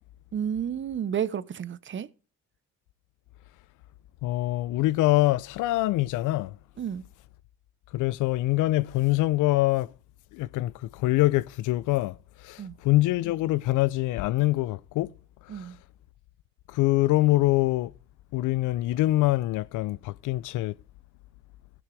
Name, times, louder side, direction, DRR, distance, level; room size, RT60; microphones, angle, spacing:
voice 1, 0.3-2.1 6.8-7.0 12.6-12.8 15.5-15.8, right 8 dB, 40° right, 0.7 m, -31 dB
voice 2, 4.2-6.6 7.9-9.9 10.3-15.1 15.4-15.7 16.7-17.9 18.3-20.8, left 17 dB, 90° left, 0.5 m, -24 dB
17.0 x 6.2 x 3.2 m
cardioid pair, 90°, 30 cm